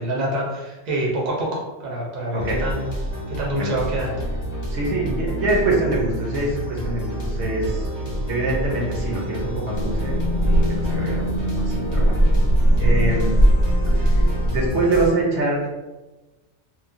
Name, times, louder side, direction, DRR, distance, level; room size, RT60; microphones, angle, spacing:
voice 1, 0.0-2.9 3.3-4.1, right 1 dB, 45° right, -3 dB, 0.7 m, -26 dB
sound 1, 2.4-15.1, equal, 30° left, 0.7 m, -28 dB
voice 2, 4.7-7.9 8.3-12.2 12.8-13.3 14.0-15.7, right 2 dB, 70° right, -2 dB, 1.0 m, -25 dB
sound 2, 9.7-14.7, equal, 60° left, 0.8 m, -19 dB
3.0 x 2.1 x 2.5 m, 1.1 s
omnidirectional pair, 1.2 m